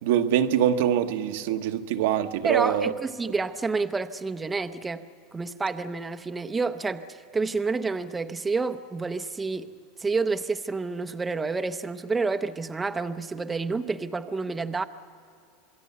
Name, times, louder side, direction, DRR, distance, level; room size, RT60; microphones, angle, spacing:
voice 1, 0.0-2.9 3.2-3.3, right 10 dB, 80° right, 1.1 m, -24 dB
voice 2, 2.4-5.1 5.3-9.7 10.0-14.8, right 4 dB, 15° right, 0.7 m, -29 dB
26.5 x 21.5 x 7.0 m
supercardioid pair, 130°, 0 cm